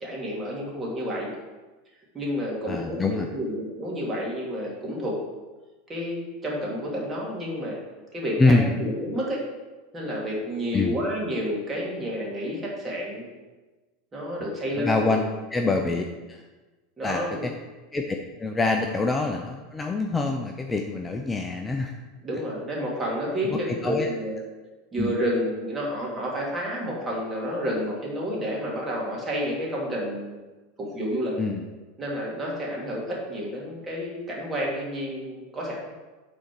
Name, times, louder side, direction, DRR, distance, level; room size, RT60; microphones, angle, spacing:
voice 1, 0.0-1.3 2.1-5.2 5.9-7.8 8.1-9.4 9.9-13.3 14.1-15.2 17.0-17.5 22.2-24.4 24.9-30.5 30.8-31.4 32.0-36.0, equal, 20° right, -3 dB, 2.5 m, -30 dB
voice 2, 2.7-3.3 8.4-8.8 10.7-11.0 14.8-16.4 17.0-17.5 17.9-21.9 22.3-22.4 23.5-24.1 25.0-25.1 31.4-31.7, left 3 dB, 15° left, 3 dB, 0.6 m, -25 dB
6.2 x 4.2 x 6.1 m, 1.2 s
hypercardioid pair, 110°, 0 cm